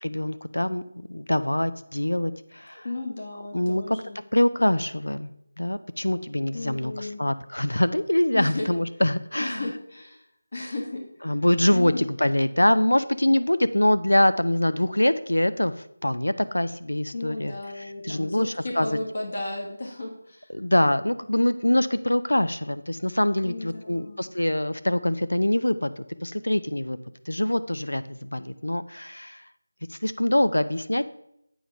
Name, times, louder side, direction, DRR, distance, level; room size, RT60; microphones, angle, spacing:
voice 1, 0.0-2.9 3.5-4.0 4.3-5.3 5.6-9.7 11.2-15.7 16.0-17.5 18.0-19.0 20.5-27.0 27.3-29.4 29.9-31.1, left 1 dB, 90° left, 12 dB, 0.5 m, -24 dB
voice 2, 2.7-4.2 6.5-7.2 8.3-8.7 9.4-10.2 10.5-11.3 11.7-12.0 17.1-20.5 23.4-24.3, left 2 dB, 50° left, 0 dB, 1.6 m, -34 dB
8.1 x 4.7 x 5.4 m, 0.77 s
figure-of-eight pair, 170°, 0 cm